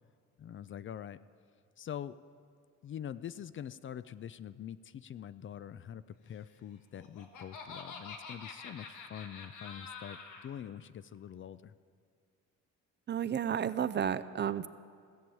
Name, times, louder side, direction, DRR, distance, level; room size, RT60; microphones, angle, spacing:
voice 1, 0.4-1.2 1.8-2.2 2.8-11.7, left 9 dB, 40° left, 16 dB, 0.4 m, -44 dB
Laughter, 6.7-10.5, left 5 dB, 90° left, 1.4 m, -47 dB
voice 2, 13.1-14.7, right 8 dB, 35° right, 14 dB, 0.4 m, -32 dB
16.5 x 7.1 x 7.7 m, 2.2 s
cardioid pair, 90°, 30 cm